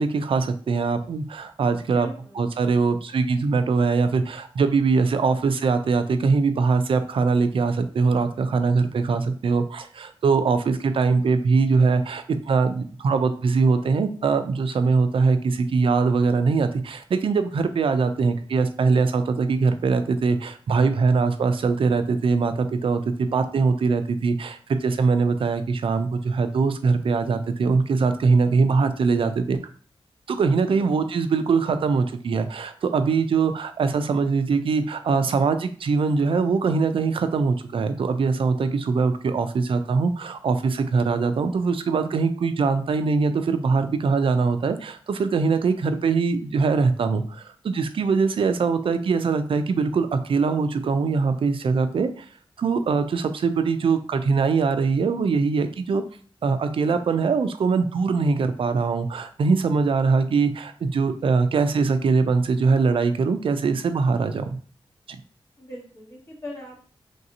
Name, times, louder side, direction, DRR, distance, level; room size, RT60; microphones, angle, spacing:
voice 1, 0.0-2.1 2.4-29.6 30.3-52.2 52.6-56.0 56.4-64.5, right 4 dB, 65° right, 9 dB, 0.4 m, -22 dB
voice 2, 1.9-2.4 30.6-31.0 65.6-66.8, left 1 dB, 30° left, -3 dB, 1.0 m, -40 dB
3.2 x 2.6 x 2.7 m, 0.43 s
wide cardioid pair, 115°, 10 cm